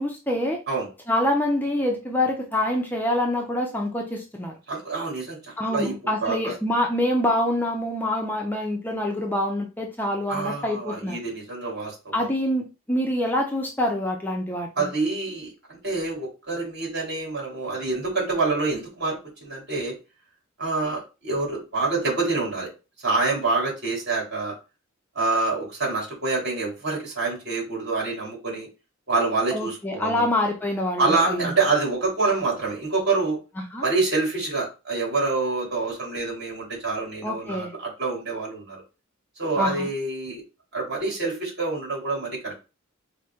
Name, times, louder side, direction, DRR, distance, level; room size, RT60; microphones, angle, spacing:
voice 1, 0.0-0.6 1.1-4.5 5.6-11.2 12.1-14.9 29.5-31.5 33.7-33.8 37.2-37.7 39.6-39.9, left 1 dB, 10° left, 1 dB, 0.6 m, -26 dB
voice 2, 4.7-5.9 6.2-6.5 10.3-12.3 14.8-19.9 20.6-22.7 23.0-24.5 25.1-28.7 29.1-30.3 31.0-33.4 33.8-38.8 39.4-40.4 40.7-42.6, right 3 dB, 55° right, -2 dB, 2.5 m, -26 dB
4.7 x 2.1 x 4.3 m, 0.29 s
head